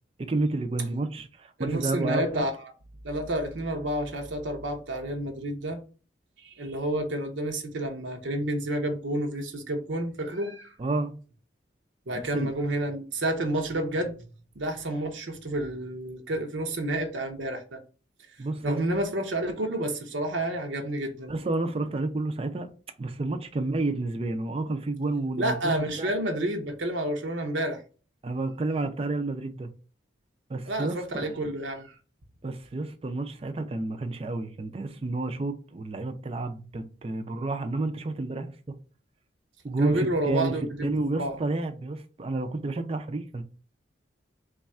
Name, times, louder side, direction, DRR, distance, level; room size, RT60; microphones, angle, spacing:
voice 1, 0.2-2.5 10.8-11.1 12.3-12.5 18.4-18.8 21.3-22.7 23.0-26.1 28.2-29.7 30.5-31.0 32.4-38.5 39.6-40.6 40.8-43.4, right 2 dB, 30° right, 0.4 m, -30 dB
voice 2, 1.6-2.5 3.0-5.8 6.4-10.7 12.1-14.1 14.6-17.8 18.6-21.3 25.4-27.8 30.7-32.0 39.8-41.4, right 1 dB, 75° right, 0.7 m, -30 dB
3.2 x 2.4 x 4.2 m
head